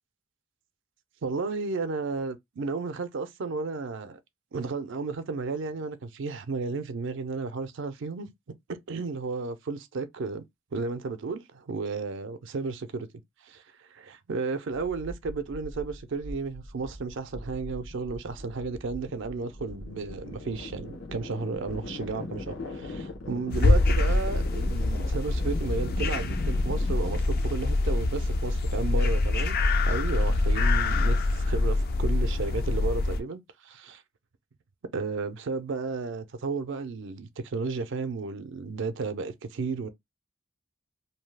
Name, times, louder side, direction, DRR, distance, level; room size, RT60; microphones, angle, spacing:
voice 1, 1.2-4.2 4.5-8.3 8.7-10.4 10.7-13.1 13.4-29.6 29.9-34.0 34.9-39.9, right 4 dB, 65° right, 0.5 m, -33 dB
sound 1, 14.8-31.7, left 1 dB, 85° left, 1.0 m, -41 dB
sound 2, 23.5-33.2, left 2 dB, 50° left, 0.4 m, -25 dB
2.7 x 2.3 x 3.2 m
head